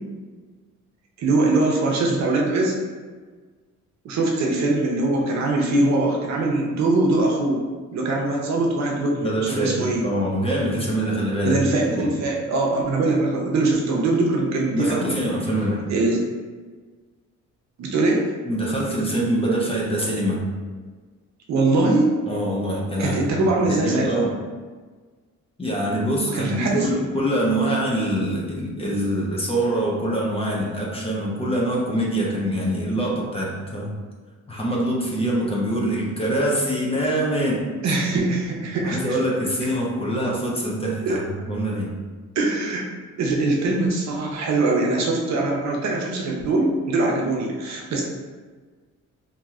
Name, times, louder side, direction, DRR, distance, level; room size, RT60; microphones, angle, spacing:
voice 1, 1.2-2.8 4.0-7.6 7.9-10.0 11.4-15.1 15.9-16.2 17.8-18.3 21.5-22.1 23.0-24.2 26.3-26.9 37.8-39.2 41.0-41.2 42.4-42.9 43.2-48.0, right 2 dB, 65° right, -1 dB, 0.7 m, -22 dB
voice 2, 9.2-11.6 11.9-12.1 14.7-15.9 18.4-20.5 22.2-24.4 25.6-33.9 34.5-37.7 38.8-42.0, right 1 dB, 20° left, -3 dB, 0.7 m, -24 dB
3.0 x 2.7 x 2.4 m, 1.4 s
cardioid pair, 90°, 30 cm